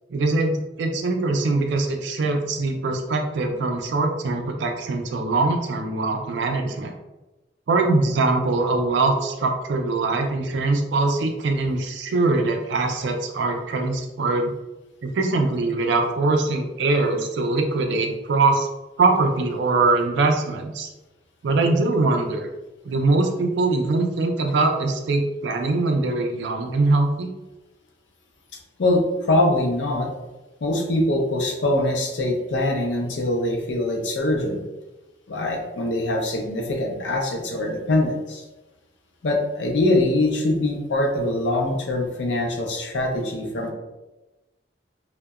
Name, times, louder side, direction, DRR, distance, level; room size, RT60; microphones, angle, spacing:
voice 1, 0.1-6.9 7.7-14.5 15.0-18.7 19.0-20.9 21.4-22.5 22.8-27.3, right 3 dB, 75° right, 4 dB, 0.4 m, -22 dB
voice 2, 28.8-30.1 30.6-34.6 35.3-38.4 39.2-43.7, left 1 dB, 75° left, 2 dB, 0.5 m, -23 dB
2.7 x 2.1 x 2.3 m, 1.0 s
head